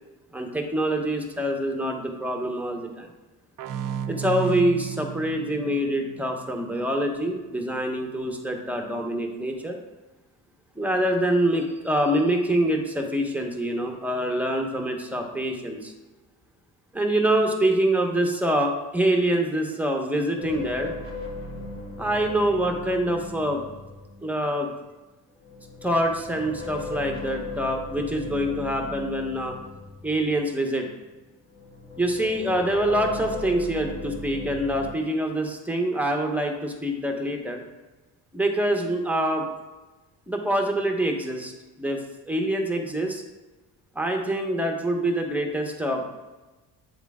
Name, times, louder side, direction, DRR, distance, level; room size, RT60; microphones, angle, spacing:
voice 1, 0.3-3.1 4.1-9.8 10.7-15.9 16.9-20.9 22.0-23.6 24.2-24.7 25.8-29.6 30.0-30.9 32.0-37.6 38.3-39.4 40.3-41.5 41.8-43.2 43.9-46.0, right 1 dB, 5° right, 2 dB, 1.0 m, -25 dB
sound 1, 3.6-7.0, right 8 dB, 50° right, 0.6 m, -34 dB
sound 2, 20.4-24.5 25.4-31.1 31.5-34.9, left 2 dB, 30° left, 2.0 m, -37 dB
8.5 x 3.6 x 3.6 m, 1.2 s
cardioid pair, 80°, 43 cm